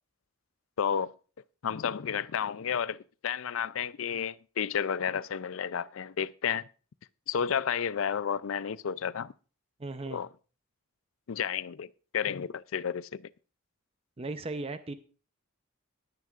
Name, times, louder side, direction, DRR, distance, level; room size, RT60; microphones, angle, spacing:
voice 1, 0.8-1.1 1.6-6.6 7.3-9.3 10.1-10.3 11.3-11.9 12.1-13.2, left 7 dB, 75° left, 0.4 m, -31 dB
voice 2, 9.8-10.2 14.2-14.9, right 2 dB, 30° right, 0.7 m, -36 dB
19.5 x 9.3 x 2.5 m
head